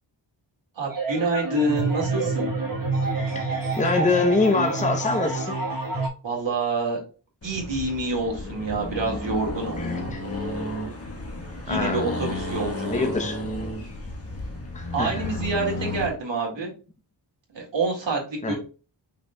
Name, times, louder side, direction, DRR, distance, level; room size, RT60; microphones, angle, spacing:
voice 1, 0.8-2.5 6.2-7.0 7.4-9.8 11.7-13.1 14.9-16.7 17.5-18.6, right 3 dB, 75° right, 2.1 m, -27 dB
sound 1, 0.9-6.1, right 3 dB, 45° right, 1.3 m, -27 dB
voice 2, 3.5-5.6 9.8-10.2 11.7-12.1 12.9-13.4 14.7-15.3 18.4-18.5, left 3 dB, 15° left, 0.7 m, -25 dB
Accelerating revving vroom, 7.4-16.1, left 1 dB, 30° left, 1.2 m, -32 dB
5.6 x 3.9 x 2.2 m
wide cardioid pair, 90°, 45 cm